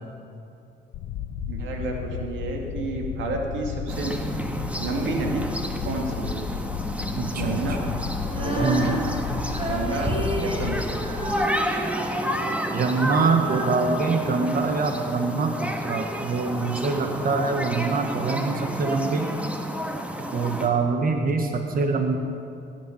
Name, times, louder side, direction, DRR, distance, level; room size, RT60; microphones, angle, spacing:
sound 1, 0.9-11.5, left 8 dB, 90° left, 0.8 m, -33 dB
voice 1, 1.5-4.1 4.8-5.5 5.8-6.4 7.4-7.8 8.4-8.9 9.6-10.1 10.4-10.8, right 3 dB, 85° right, 1 dB, 2.0 m, -30 dB
sound 2, 3.9-20.7, equal, 5° right, 1.7 m, -31 dB
voice 2, 7.2-7.6 8.6-9.0 12.7-19.3 20.3-22.2, right 4 dB, 50° right, 4 dB, 1.3 m, -24 dB
Female singing, 8.2-15.3, right 1 dB, 30° right, 3.8 m, -32 dB
17.5 x 8.8 x 7.1 m, 2.6 s
cardioid pair, 70°, 19 cm